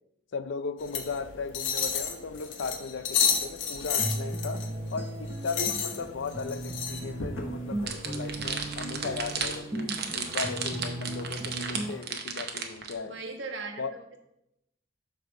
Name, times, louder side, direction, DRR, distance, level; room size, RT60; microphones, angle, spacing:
voice 1, 0.3-13.2 13.8-13.9, left 5 dB, 70° left, 0.4 m, -37 dB
sound 1, 0.8-9.6, left 7 dB, 90° left, 1.0 m, -32 dB
sound 2, 4.0-12.0, right 1 dB, 15° right, 0.4 m, -36 dB
sound 3, 7.9-12.9, right 6 dB, 60° right, 0.9 m, -33 dB
voice 2, 13.0-14.2, right 3 dB, 80° right, 1.2 m, -39 dB
7.9 x 3.4 x 6.0 m
head